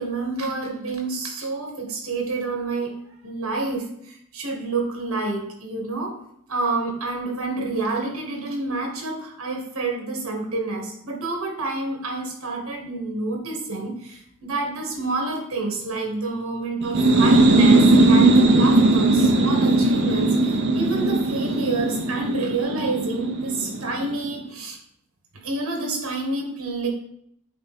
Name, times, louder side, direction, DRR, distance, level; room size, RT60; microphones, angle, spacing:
voice 1, 0.0-3.0 3.2-6.2 6.5-20.3 20.7-24.8 25.4-26.9, right 3 dB, 80° right, 1 dB, 1.8 m, -28 dB
sound 1, 16.8-24.3, right 2 dB, 55° right, 0.7 m, -18 dB
8.4 x 3.6 x 4.3 m, 0.71 s
head